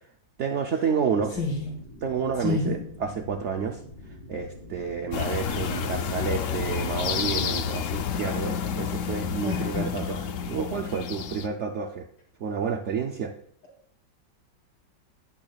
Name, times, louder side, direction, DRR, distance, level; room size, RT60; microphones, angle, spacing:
voice 1, 0.4-1.3 2.0-3.8 4.3-12.1 12.4-13.3, right 6 dB, 75° right, 3 dB, 0.6 m, -30 dB
sound 1, 1.2-6.9, left 1 dB, 35° left, 2.6 m, -46 dB
voice 2, 1.3-1.7 2.4-2.8 9.4-10.0, left 4 dB, 80° left, -3 dB, 4.1 m, -29 dB
sound 2, 5.1-11.5, left 7 dB, 60° left, 0.8 m, -30 dB
11.0 x 10.5 x 2.3 m, 0.66 s
omnidirectional pair, 2.0 m